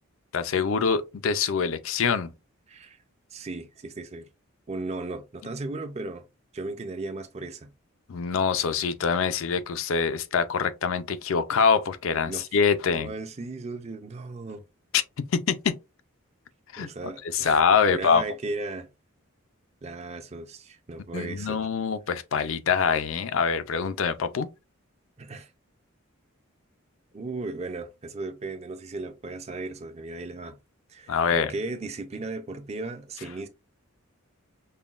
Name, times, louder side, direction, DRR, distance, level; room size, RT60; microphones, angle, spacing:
voice 1, 0.3-2.3 8.1-13.1 14.9-15.0 15.3-15.7 16.7-16.9 17.2-18.2 21.1-24.5 31.1-31.5, left 6 dB, 70° left, 0.5 m, -24 dB
voice 2, 2.7-3.0 3.3-4.3 4.7-6.2 6.5-7.7 12.3-12.4 12.9-14.6 16.8-18.9 19.8-21.6 25.2-25.5 27.1-30.6 30.9-33.5, right 3 dB, 30° right, 0.5 m, -36 dB
5.5 x 2.2 x 2.4 m
head